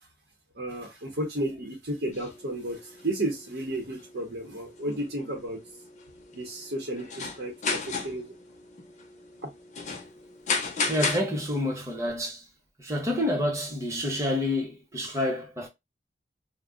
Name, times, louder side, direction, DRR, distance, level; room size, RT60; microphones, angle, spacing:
voice 1, 0.5-5.6 6.3-8.3, right 1 dB, 65° right, 0.8 m, -33 dB
sound 1, 2.1-11.2, left 4 dB, 40° left, 0.5 m, -35 dB
voice 2, 10.9-12.4 12.8-15.7, left 1 dB, 15° right, 0.8 m, -28 dB
2.3 x 2.1 x 3.6 m
head